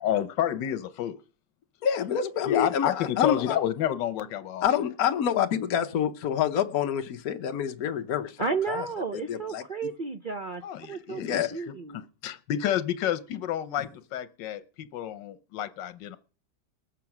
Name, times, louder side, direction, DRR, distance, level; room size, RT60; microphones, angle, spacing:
voice 1, 0.0-1.1 2.5-4.7 10.6-11.6 11.9-16.2, left 10 dB, 85° left, 13 dB, 1.5 m, -30 dB
voice 2, 1.8-3.6 4.6-8.4 8.7-8.9 9.1-9.6 11.2-11.5 13.8-13.9, left 9 dB, 60° left, 5 dB, 1.3 m, -27 dB
voice 3, 8.4-12.0, right 4 dB, 60° right, 6 dB, 0.5 m, -33 dB
20.0 x 7.6 x 5.9 m, 0.41 s
omnidirectional pair, 1.9 m